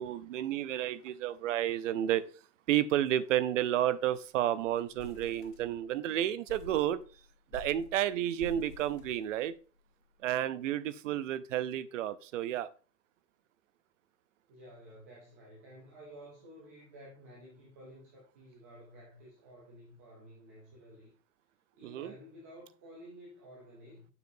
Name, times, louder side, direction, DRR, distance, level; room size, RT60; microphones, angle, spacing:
voice 1, 0.0-2.2 2.7-7.0 7.5-9.5 10.2-12.7 21.8-22.1, right 12 dB, 55° right, 0.6 m, -31 dB
sound 1, 3.0-3.2 3.5-3.6 3.9-4.3 4.6-6.0 6.5-9.8, left 3 dB, 55° left, 2.4 m, -50 dB
voice 2, 14.5-21.1 21.8-24.1, equal, 10° right, 0.4 m, -52 dB
6.8 x 6.5 x 2.6 m
hypercardioid pair, 155°, 47 cm